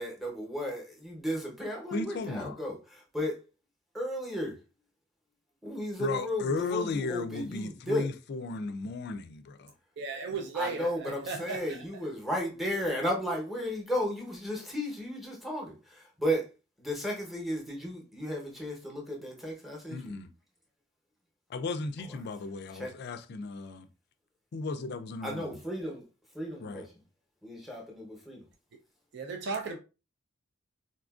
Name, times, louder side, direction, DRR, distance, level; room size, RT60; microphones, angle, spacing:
voice 1, 0.0-3.4 3.9-4.6 5.6-8.1 10.5-16.5 16.8-20.2 22.7-22.9 25.2-26.0 26.3-26.9 27.4-28.5, equal, ahead, 0.8 m, -34 dB
voice 2, 1.9-2.6 6.0-9.7 19.9-20.3 21.5-23.9 24.5-25.6 26.6-26.9, left 3 dB, 55° left, 0.3 m, -35 dB
voice 3, 10.0-11.8 29.1-29.8, right 4 dB, 55° right, 0.4 m, -36 dB
4.2 x 2.4 x 2.3 m
head